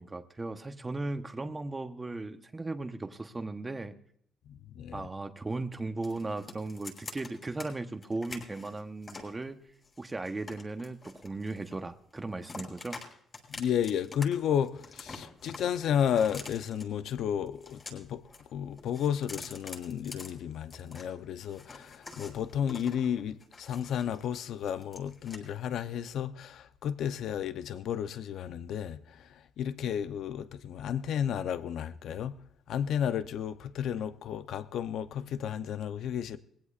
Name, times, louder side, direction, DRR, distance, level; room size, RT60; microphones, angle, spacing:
voice 1, 0.0-3.9 4.9-9.6 10.0-13.0, right 2 dB, 20° right, 1.0 m, -37 dB
voice 2, 4.5-5.0 13.5-18.2 18.5-29.3 29.6-32.4 32.7-36.4, left 9 dB, 75° left, 0.7 m, -32 dB
sound 1, 6.0-7.7 8.0-9.3 9.8-11.9 12.2-13.1 13.3-14.2 14.5-16.8 17.5-18.4 18.7-21.1 21.4-24.3 24.6-25.4, left 3 dB, 35° left, 7.3 m, -46 dB
21.5 x 16.5 x 2.5 m
cardioid pair, 90°, 0 cm